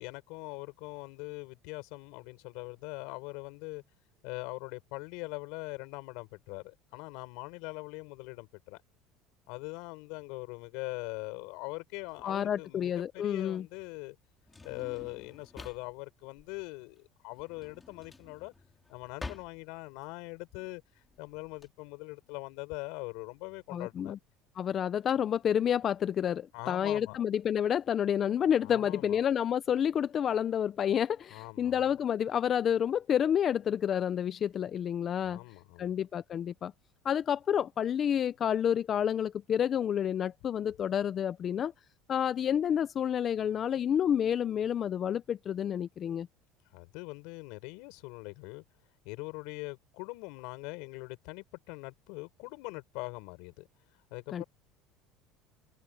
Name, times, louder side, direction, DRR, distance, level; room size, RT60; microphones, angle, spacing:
voice 1, 0.0-3.8 4.2-8.8 9.5-14.2 14.6-18.5 18.9-20.8 21.2-24.2 26.5-27.2 28.6-29.2 31.3-31.9 35.2-36.0 46.7-48.6 49.0-53.7 54.1-54.4, left 28 dB, 75° left, 5.4 m, -42 dB
Drawer open or close, 12.1-21.7, left 3 dB, 15° left, 4.3 m, -50 dB
voice 2, 12.2-13.7 23.7-24.2 24.6-35.4 35.8-36.7 37.0-41.7 42.1-46.3 54.3-54.4, left 9 dB, 35° left, 0.5 m, -29 dB
cardioid pair, 145°, 0 cm